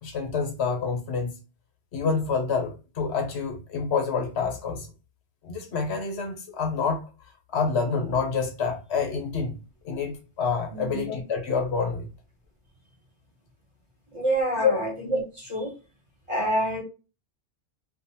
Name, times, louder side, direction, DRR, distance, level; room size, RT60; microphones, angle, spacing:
voice 1, 0.0-1.3 1.9-4.9 5.4-7.1 7.5-9.6 9.8-12.1 14.5-14.7, left 5 dB, 65° left, 1.0 m, -27 dB
voice 2, 10.7-11.0 14.1-15.7 16.3-16.8, right 1 dB, 25° right, 1.0 m, -27 dB
2.6 x 2.4 x 2.7 m
omnidirectional pair, 1.2 m